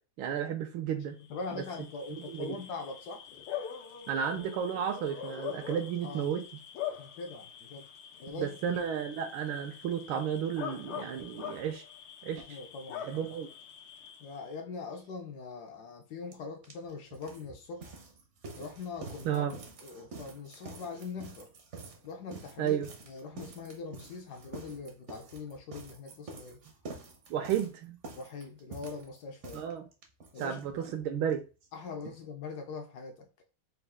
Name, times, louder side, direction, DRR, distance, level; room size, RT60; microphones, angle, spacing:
voice 1, 0.2-1.2 2.3-2.6 4.1-6.4 8.3-11.8 12.2-12.6 13.1-13.5 19.2-19.6 22.6-22.9 27.3-28.0 29.5-29.8 30.4-31.4, right 8 dB, 80° right, 1.3 m, -32 dB
Bark / Cricket, 1.2-14.5, left 9 dB, 90° left, 1.7 m, -44 dB
voice 2, 1.3-3.3 6.0-6.3 7.0-7.8 8.2-8.8 12.3-13.3 14.2-18.0 18.6-21.5 22.0-22.8 23.0-26.6 28.1-29.6 30.3-30.9 31.7-33.3, left 4 dB, 75° left, 0.9 m, -42 dB
sound 1, 16.3-16.4 16.6-31.0 31.3-31.4 31.6-31.7 32.0-32.1, right 3 dB, 60° right, 0.7 m, -48 dB
4.3 x 2.3 x 3.5 m
omnidirectional pair, 2.3 m